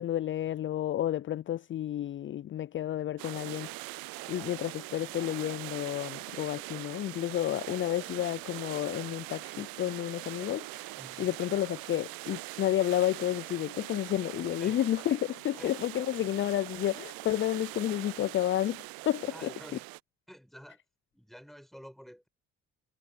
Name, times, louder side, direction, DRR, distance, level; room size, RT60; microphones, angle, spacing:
voice 1, 0.0-19.5, left 12 dB, 35° left, 0.4 m, -31 dB
sound 1, 3.2-20.0, right 24 dB, 80° right, 0.6 m, -42 dB
voice 2, 11.0-11.4 14.6-14.9 15.6-15.7 16.2-16.3 19.3-19.8 20.3-20.8 21.1-22.3, equal, ahead, 6.6 m, -50 dB
hypercardioid pair, 55°, 35 cm